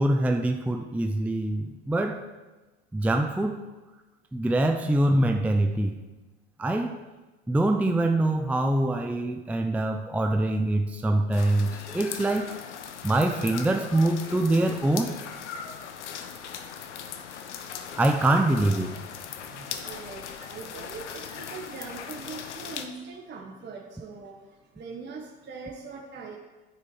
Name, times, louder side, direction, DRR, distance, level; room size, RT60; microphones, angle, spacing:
voice 1, 0.0-2.2 2.9-3.6 4.3-6.0 6.6-7.0 7.5-12.6 13.0-15.2 18.0-19.0, right 1 dB, 5° right, 5 dB, 0.6 m, -24 dB
sound 1, 11.3-22.9, left 7 dB, 90° left, 0.9 m, -39 dB
voice 2, 19.2-26.4, right 4 dB, 30° right, 0 dB, 1.3 m, -42 dB
9.8 x 7.4 x 4.7 m, 1.2 s
hypercardioid pair, 80°, 34 cm